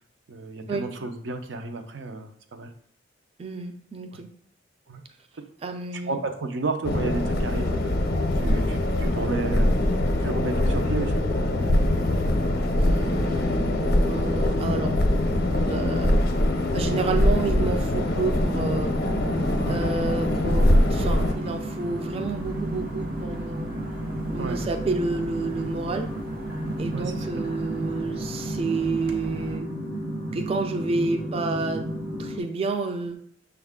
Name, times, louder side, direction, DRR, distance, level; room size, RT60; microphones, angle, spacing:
voice 1, 0.3-2.7 4.1-4.2 4.9-5.0 6.1-7.9 8.4-9.8 10.2-11.1 19.7-19.8 24.4-24.6 26.9-27.5, right 3 dB, 90° right, 6 dB, 0.5 m, -32 dB
voice 2, 3.4-4.3 5.6-6.2 12.8-14.9 15.3-16.1 16.7-19.0 19.7-23.8 24.3-26.1 26.8-29.7 30.3-31.8 32.2-33.2, right 3 dB, 30° right, 6 dB, 0.3 m, -30 dB
sound 1, 6.8-21.3, left 1 dB, 55° left, 0.5 m, -23 dB
sound 2, 18.3-32.4, right 1 dB, 70° right, 1.1 m, -33 dB
sound 3, 20.5-29.6, right 1 dB, 50° right, 0.7 m, -40 dB
6.3 x 2.3 x 3.5 m, 0.64 s
head